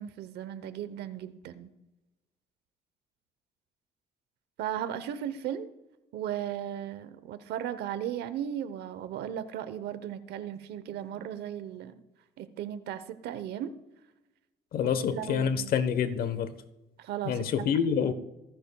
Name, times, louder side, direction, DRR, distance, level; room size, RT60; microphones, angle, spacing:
voice 1, 0.0-1.7 4.6-5.7 6.1-11.9 12.4-13.7 14.8-15.7 17.0-17.7, right 10 dB, 75° right, 0.9 m, -36 dB
voice 2, 14.7-16.5 17.3-18.1, left 7 dB, 60° left, 1.0 m, -27 dB
25.0 x 10.5 x 2.3 m
cardioid pair, 110°, 17 cm